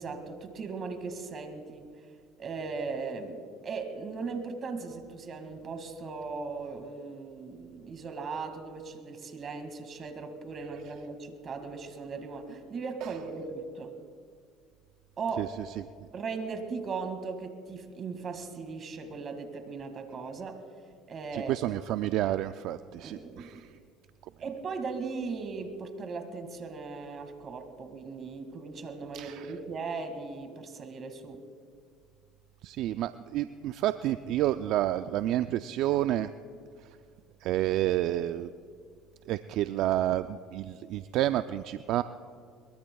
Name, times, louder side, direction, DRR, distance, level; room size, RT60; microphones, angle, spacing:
voice 1, 0.0-1.9 2.4-14.0 15.2-15.6 16.1-20.6 21.1-21.5 23.0-23.6 24.4-31.4, right 4 dB, 40° right, 7 dB, 2.1 m, -38 dB
voice 2, 21.3-23.6 29.1-29.5 32.6-36.3 37.4-38.5 39.3-42.0, right 13 dB, 65° right, 11 dB, 0.4 m, -29 dB
22.5 x 22.5 x 2.3 m, 2.1 s
supercardioid pair, 85°, 0 cm